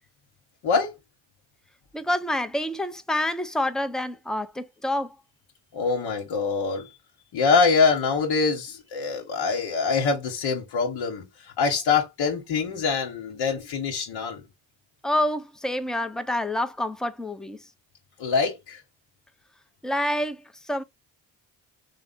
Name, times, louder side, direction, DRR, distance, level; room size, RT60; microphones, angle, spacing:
voice 1, 1.9-5.1 15.0-17.6 19.8-20.4 20.7-20.8, left 1 dB, ahead, 0.5 m, -27 dB
voice 2, 5.7-6.9 7.3-11.2 11.6-14.4 18.2-18.8, left 5 dB, 75° left, 1.1 m, -24 dB
3.3 x 2.1 x 3.6 m
supercardioid pair, 50°, 47 cm